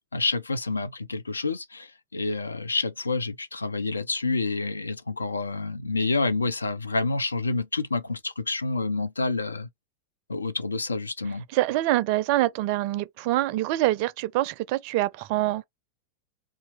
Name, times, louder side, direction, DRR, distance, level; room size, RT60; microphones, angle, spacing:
voice 1, 0.1-9.7 10.3-11.4, left 3 dB, 80° left, 0.4 m, -28 dB
voice 2, 11.5-15.6, right 16 dB, 45° right, 0.4 m, -25 dB
2.8 x 2.3 x 3.5 m
figure-of-eight pair, 90°, 0 cm